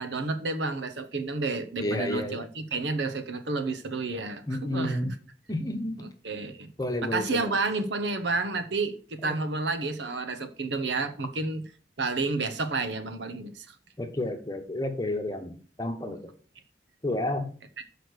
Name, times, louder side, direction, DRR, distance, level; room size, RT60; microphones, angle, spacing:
voice 1, 0.0-5.1 6.0-6.7 7.0-11.6 12.0-13.8 17.8-17.9, right 3 dB, 80° right, 0.9 m, -30 dB
voice 2, 1.8-2.5 4.5-5.2 5.5-6.1 6.8-7.5 14.0-16.3 17.0-17.5, left 1 dB, 20° left, 1.0 m, -31 dB
6.4 x 4.9 x 6.4 m
head